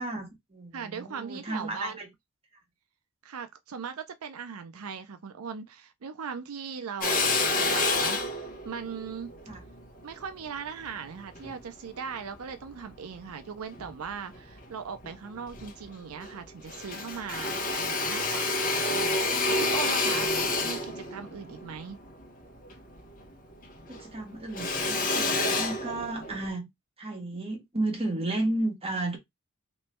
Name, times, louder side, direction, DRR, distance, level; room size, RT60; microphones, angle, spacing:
voice 1, 0.0-2.1 9.5-9.6 19.3-19.6 23.9-26.7 27.0-29.2, right 2 dB, 25° right, 1.6 m, -33 dB
voice 2, 0.7-2.0 3.2-9.3 10.0-20.3 20.6-22.0, right 6 dB, 85° right, 0.5 m, -39 dB
Drill, 7.0-11.5 12.1-13.3 13.7-14.7 15.0-15.1 15.4-16.4 16.6-23.3 23.6-26.5, left 2 dB, 40° left, 1.3 m, -29 dB
3.2 x 3.0 x 4.4 m
head